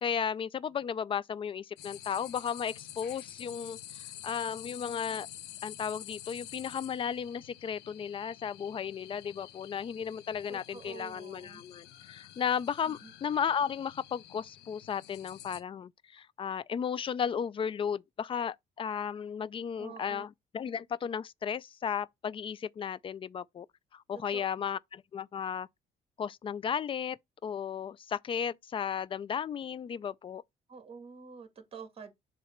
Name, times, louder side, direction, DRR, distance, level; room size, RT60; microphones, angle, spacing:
voice 1, 0.0-5.3 5.6-23.7 23.9-25.7 26.2-27.2 27.4-30.4, left 7 dB, 30° left, 0.4 m, -34 dB
sound 1, 1.8-15.6, left 12 dB, 85° left, 0.9 m, -49 dB
voice 2, 10.5-11.6 12.9-13.1 19.8-20.2 24.3-24.5 30.7-32.1, right 6 dB, 35° right, 1.8 m, -47 dB
7.1 x 3.0 x 5.8 m
cardioid pair, 110°, 17 cm